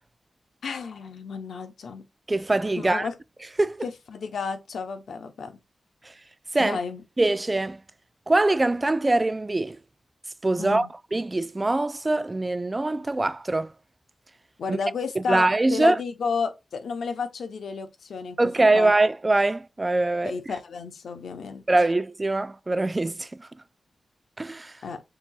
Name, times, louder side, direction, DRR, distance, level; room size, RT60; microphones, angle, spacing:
voice 1, 0.6-2.0 2.8-3.1 3.8-5.5 6.6-7.0 10.6-10.9 14.6-18.9 20.2-21.6 24.8-25.0, left 5 dB, 80° left, 0.8 m, -32 dB
voice 2, 2.3-3.1 3.6-3.8 6.5-6.8 7.2-7.8 8.3-9.8 10.4-13.7 14.7-14.8 15.2-16.0 18.4-20.3 21.7-23.5 24.4-24.7, right 2 dB, 25° right, 0.3 m, -23 dB
6.8 x 2.9 x 2.3 m
cardioid pair, 65°, 0 cm